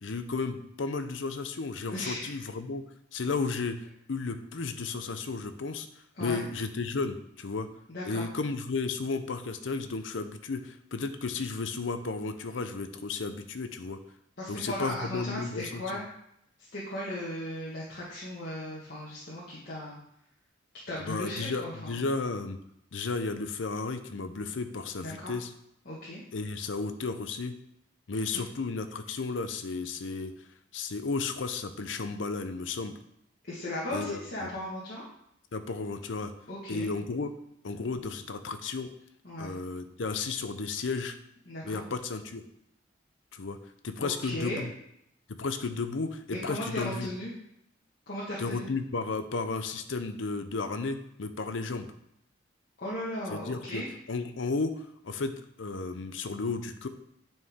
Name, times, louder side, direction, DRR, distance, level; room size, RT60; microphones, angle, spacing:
voice 1, 0.0-2.8 3.1-3.8 4.1-5.9 6.2-7.7 8.1-14.0 14.5-15.8 21.0-22.6 22.9-25.5 26.3-27.5 28.1-30.3 30.7-33.0 33.9-34.5 35.5-36.3 36.7-37.3 37.6-38.9 39.4-41.2 41.6-42.4 43.3-43.6 43.8-44.7 45.4-47.1 48.4-51.9 53.3-55.3 55.6-56.9, left 4 dB, 90° left, 9 dB, 0.7 m, -33 dB
voice 2, 1.9-2.3 6.1-6.4 7.9-8.2 14.4-16.0 16.6-20.0 20.9-22.0 24.9-25.3 25.8-26.2 33.5-35.0 36.5-36.9 39.2-39.5 41.5-41.8 44.0-44.6 46.3-47.3 48.1-48.7 52.8-53.9, left 1 dB, 55° left, -7 dB, 1.6 m, -36 dB
9.4 x 4.5 x 3.6 m, 0.75 s
head